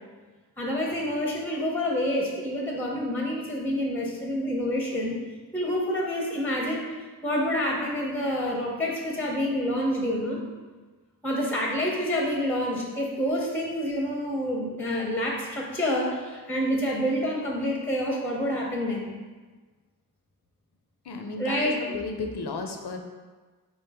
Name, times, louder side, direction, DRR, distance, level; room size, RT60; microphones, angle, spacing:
voice 1, 0.6-5.2 5.5-6.8 7.2-10.4 11.2-19.1 21.4-22.0, equal, 5° left, -2 dB, 0.6 m, -28 dB
voice 2, 21.0-23.0, left 3 dB, 85° left, 4 dB, 0.5 m, -33 dB
4.1 x 3.1 x 3.4 m, 1.4 s
wide cardioid pair, 40°, 39 cm